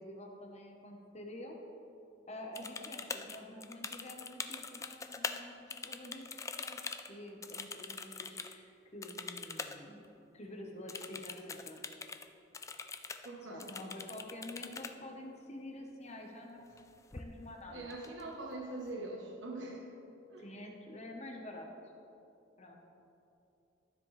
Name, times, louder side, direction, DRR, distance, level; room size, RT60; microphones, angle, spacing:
voice 1, 0.0-1.6 2.3-6.8 7.1-11.8 13.4-17.9 20.4-21.7 22.6-22.8, left 1 dB, 35° left, 1 dB, 1.1 m, -48 dB
sound 1, 2.6-5.4 5.7-8.6 9.0-9.8 10.0-10.1 10.9-12.3 12.5-13.3 13.6-14.9 16.6-16.8 17.1-17.6 17.9-18.5, left 4 dB, 15° left, 0.3 m, -43 dB
voice 2, 13.2-13.7 17.7-19.9 20.3-20.5, right 2 dB, 80° right, -1 dB, 1.1 m, -43 dB
12.5 x 7.4 x 3.3 m, 2.8 s
head